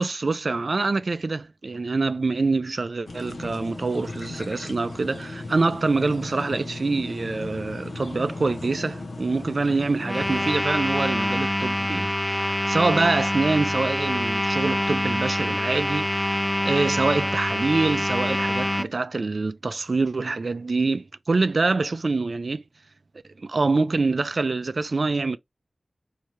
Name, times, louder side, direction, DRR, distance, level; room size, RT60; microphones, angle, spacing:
voice 1, 0.0-16.4 16.6-22.6 23.4-25.4, right 3 dB, 65° right, 0.4 m, -25 dB
sound 1, 3.1-10.5, left 2 dB, 85° left, 0.8 m, -37 dB
sound 2, 10.0-18.9, left 1 dB, 20° left, 0.4 m, -25 dB
4.5 x 2.8 x 3.1 m
wide cardioid pair, 55°, 0 cm